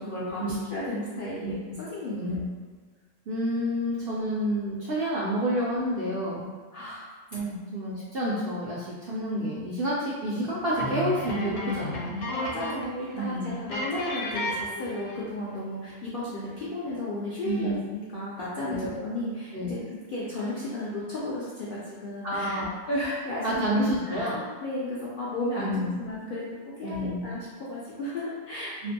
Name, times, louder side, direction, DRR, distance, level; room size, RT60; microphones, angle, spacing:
voice 1, 0.0-2.4 6.7-7.1 12.3-28.9, left 1 dB, 60° left, -8 dB, 0.6 m, -34 dB
voice 2, 1.4-1.8 2.2-2.5 3.3-6.5 7.3-12.2 13.2-13.6 17.4-17.7 18.7-18.9 19.5-19.7 22.2-22.7 23.4-24.4 25.6-26.0 26.8-27.3 28.8-28.9, equal, 65° right, -6 dB, 0.6 m, -29 dB
sound 1, 10.8-13.0 13.2-13.3 13.7-15.3, left 1 dB, 80° left, 1.0 m, -32 dB
2.5 x 2.5 x 2.6 m, 1.4 s
omnidirectional pair, 1.4 m